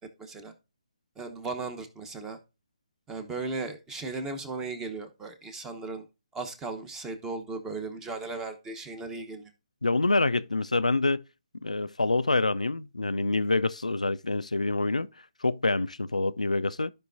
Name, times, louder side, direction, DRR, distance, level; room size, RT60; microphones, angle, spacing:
voice 1, 0.2-0.5 1.2-2.4 3.1-6.0 6.3-9.5, right 3 dB, 10° right, 0.9 m, -36 dB
voice 2, 9.8-11.2 11.6-16.9, left 2 dB, 90° left, 0.4 m, -26 dB
14.0 x 5.3 x 2.6 m
figure-of-eight pair, 140°, 4 cm